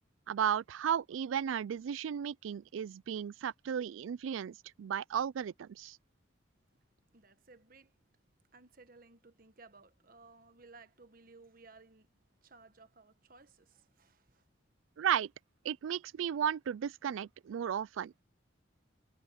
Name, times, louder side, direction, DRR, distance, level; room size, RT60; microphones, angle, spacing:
voice 1, 0.3-6.0 15.0-15.3 15.6-18.2, right 8 dB, 85° right, 0.3 m, -34 dB
voice 2, 7.1-8.0 8.5-12.1 12.4-14.5, right 3 dB, 45° right, 1.3 m, -58 dB
head